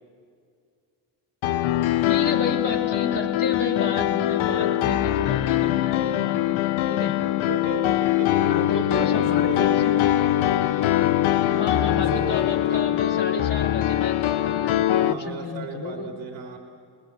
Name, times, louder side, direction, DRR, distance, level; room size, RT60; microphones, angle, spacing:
Piano, 1.4-15.1, left 13 dB, 75° left, 0.9 m, -22 dB
voice 1, 2.1-6.6 6.9-7.2 8.4-9.9 11.5-16.1, left 4 dB, 55° left, -4 dB, 3.7 m, -31 dB
voice 2, 7.4-10.2 10.7-11.2 12.1-12.8 14.9-16.6, right 4 dB, 65° right, 2 dB, 3.7 m, -36 dB
28.0 x 20.5 x 8.2 m, 2.2 s
supercardioid pair, 60°, 49 cm